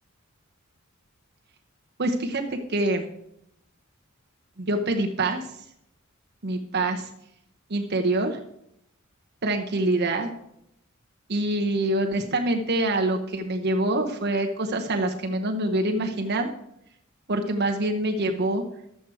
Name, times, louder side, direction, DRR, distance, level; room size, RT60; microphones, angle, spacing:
voice 1, 2.0-3.1 4.6-5.5 6.4-7.1 7.7-8.4 9.4-10.3 11.3-16.5 17.3-18.6, right 2 dB, 50° right, 3 dB, 0.9 m, -25 dB
12.0 x 7.7 x 4.8 m, 0.78 s
head